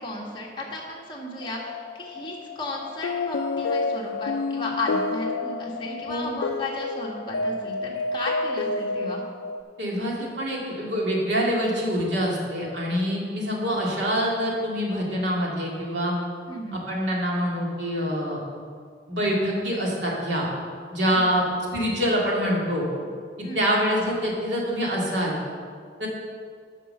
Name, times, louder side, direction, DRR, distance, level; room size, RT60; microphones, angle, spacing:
voice 1, 0.0-9.2 16.5-16.8 21.1-21.5 23.4-23.7, left 1 dB, 25° left, -3 dB, 1.6 m, -34 dB
sound 1, 1.4-9.6, left 3 dB, 80° left, 0.4 m, -29 dB
voice 2, 9.8-16.1 16.7-18.4 19.1-20.5 20.9-21.4 21.7-22.9 23.6-25.3 26.0-26.1, equal, 70° right, -3 dB, 2.3 m, -25 dB
8.9 x 5.9 x 6.6 m, 2.1 s
head